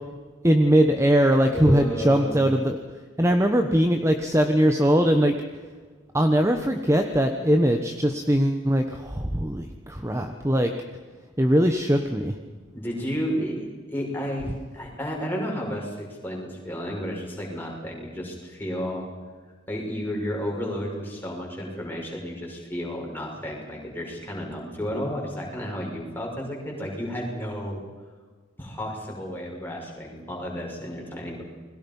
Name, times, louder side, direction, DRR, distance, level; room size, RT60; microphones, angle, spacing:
voice 1, 0.4-2.8 3.2-5.4 6.1-10.7 11.4-12.3, equal, 15° right, 5 dB, 1.0 m, -21 dB
voice 2, 1.5-2.5 12.7-19.1 19.7-27.8 28.6-31.4, equal, 10° left, -2 dB, 6.2 m, -32 dB
29.5 x 21.5 x 5.5 m, 1.5 s
head